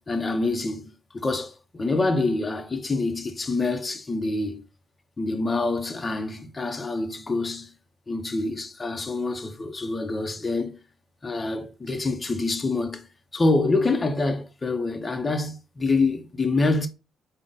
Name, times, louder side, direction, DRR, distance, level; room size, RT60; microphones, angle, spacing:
voice 1, 0.0-4.6 5.2-7.7 8.1-10.7 11.2-13.1 13.3-16.9, left 3 dB, 25° left, 0.6 m, -26 dB
3.8 x 2.0 x 3.6 m
cardioid pair, 80°, 0 cm